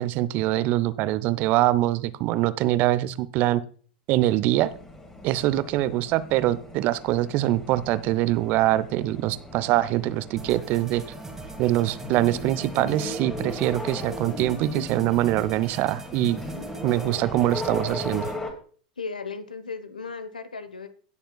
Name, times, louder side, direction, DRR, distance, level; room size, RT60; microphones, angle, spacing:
voice 1, 0.0-3.6 4.1-4.7 5.2-11.0 11.6-16.4 16.8-18.3, right 15 dB, 45° right, 16 dB, 0.7 m, -24 dB
sound 1, 4.5-18.5, left 1 dB, 10° left, 2.2 m, -37 dB
sound 2, 10.4-18.4, right 3 dB, 10° right, 1.9 m, -42 dB
voice 2, 19.0-20.9, left 4 dB, 80° left, 11 dB, 1.0 m, -36 dB
16.5 x 6.9 x 2.3 m, 0.43 s
figure-of-eight pair, 90°, 4 cm